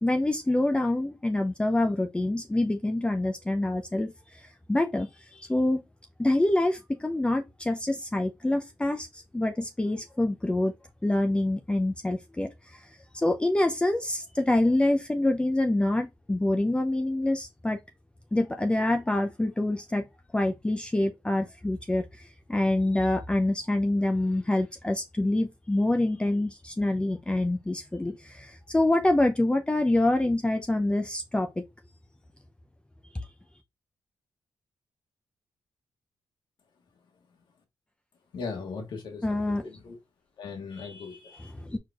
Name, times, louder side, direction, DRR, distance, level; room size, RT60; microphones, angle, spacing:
voice 1, 0.0-5.8 6.2-10.7 11.0-12.9 13.1-17.8 18.3-20.1 20.3-31.6 33.1-33.3 39.2-39.6 41.5-41.8, left 1 dB, 15° left, 0.5 m, -26 dB
voice 2, 38.3-40.0 40.4-41.5, left 4 dB, 75° left, 1.4 m, -39 dB
4.6 x 4.3 x 2.4 m
cardioid pair, 70°, 8 cm